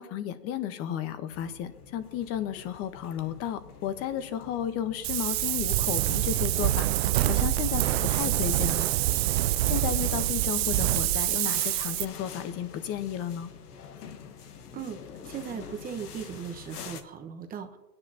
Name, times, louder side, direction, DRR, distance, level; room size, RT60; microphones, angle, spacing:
voice 1, 0.0-6.9 7.2-8.9 9.7-13.5, left 10 dB, 30° left, 11 dB, 1.1 m, -33 dB
sound 1, 1.3-17.0, left 6 dB, 80° left, 1.4 m, -47 dB
Wind, 5.0-12.1, right 15 dB, 45° right, 0.5 m, -26 dB
voice 2, 15.2-17.8, right 7 dB, 20° right, 7 dB, 1.0 m, -38 dB
21.0 x 9.8 x 2.9 m, 1.1 s
hypercardioid pair, 125°, 46 cm